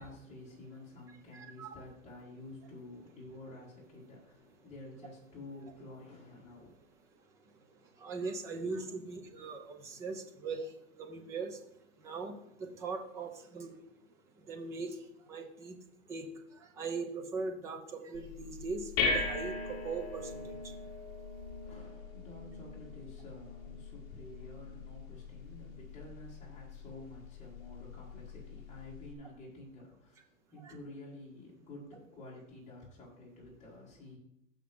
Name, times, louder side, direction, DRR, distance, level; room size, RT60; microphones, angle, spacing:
voice 1, 0.0-6.7 21.6-34.2, left 2 dB, 15° left, -6 dB, 3.8 m, -50 dB
voice 2, 1.3-1.7 8.0-10.7 11.0-11.6 12.0-13.7 14.5-15.0 15.3-15.8 16.1-16.3 16.8-20.6 30.6-30.7, right 4 dB, 10° right, 5 dB, 0.4 m, -40 dB
sound 1, 18.1-29.1, left 4 dB, 35° left, 1.9 m, -40 dB
15.5 x 6.1 x 3.6 m, 0.76 s
hypercardioid pair, 140°, 41 cm